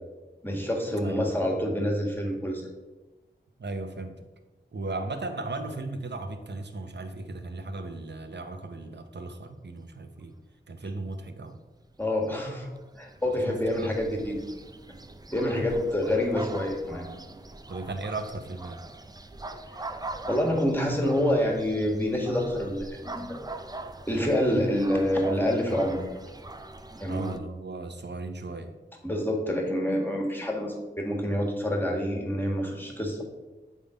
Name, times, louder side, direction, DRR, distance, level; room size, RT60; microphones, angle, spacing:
voice 1, 0.4-2.6 12.0-12.7 13.0-14.4 15.3-17.1 19.8-19.9 20.3-23.4 24.1-26.0 27.0-27.3 29.0-33.2, left 1 dB, 10° left, -1 dB, 1.7 m, -27 dB
voice 2, 1.0-1.3 3.6-4.2 4.7-10.4 10.7-11.6 13.4-13.9 17.7-18.8 27.1-28.7, right 3 dB, 70° right, 7 dB, 0.8 m, -36 dB
sound 1, 12.0-27.4, right 2 dB, 20° right, 0.5 m, -42 dB
8.3 x 3.7 x 5.0 m, 1.2 s
wide cardioid pair, 75°, 19 cm